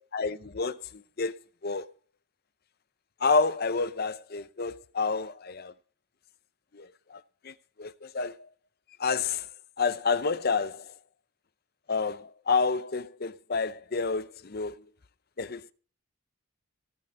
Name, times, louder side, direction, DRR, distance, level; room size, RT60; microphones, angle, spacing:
voice 1, 0.0-1.4 1.6-1.9 3.2-5.7 6.7-8.5 9.0-9.5 9.8-11.0 11.9-14.9 15.4-15.7, left 4 dB, 45° left, 0.6 m, -29 dB
17.5 x 6.7 x 6.3 m
head